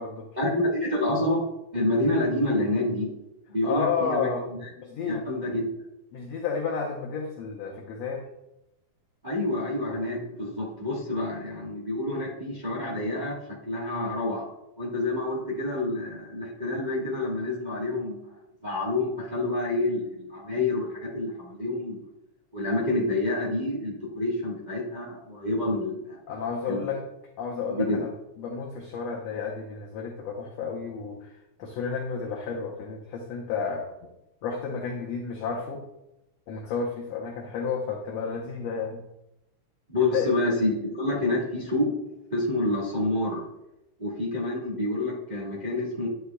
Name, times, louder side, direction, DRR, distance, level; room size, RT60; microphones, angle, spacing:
voice 1, 0.4-1.5 1.7-3.1 3.5-4.3 4.6-4.7 5.1-5.7 9.2-14.5 14.8-18.2 18.6-22.0 22.5-26.2 26.7-26.9 27.7-28.0 39.9-41.9 42.3-43.4 44.0-46.1, left 2 dB, 70° right, -4 dB, 0.4 m, -28 dB
voice 2, 3.6-4.4 4.8-5.3 6.1-8.2 26.3-27.0 27.4-28.1 28.4-34.1 34.4-35.8 36.5-39.0 40.0-40.3, left 5 dB, 70° left, 0 dB, 1.8 m, -31 dB
11.0 x 7.9 x 2.3 m, 0.89 s
omnidirectional pair, 3.6 m